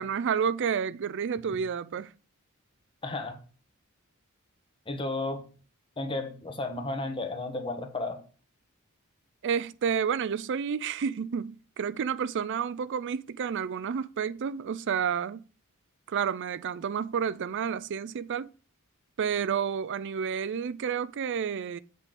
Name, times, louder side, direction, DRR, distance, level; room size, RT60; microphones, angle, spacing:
voice 1, 0.0-2.1 9.4-15.4 16.1-18.5 19.2-21.8, right 7 dB, 55° right, 0.4 m, -30 dB
voice 2, 3.0-3.4 4.9-5.4 6.0-8.2, left 2 dB, 25° left, 1.3 m, -33 dB
8.2 x 3.8 x 6.8 m
head